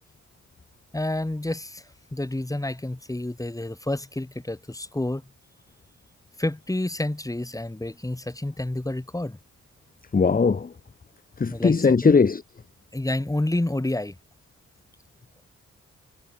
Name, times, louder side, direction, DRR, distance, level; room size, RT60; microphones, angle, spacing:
voice 1, 0.9-1.8 2.1-5.2 6.4-9.4 11.5-11.7 12.0-12.2 12.9-14.2, left 1 dB, 10° left, 2.3 m, -29 dB
voice 2, 10.1-10.7 11.4-12.4, left 5 dB, 30° left, 1.0 m, -19 dB
cardioid pair, 60°, 31 cm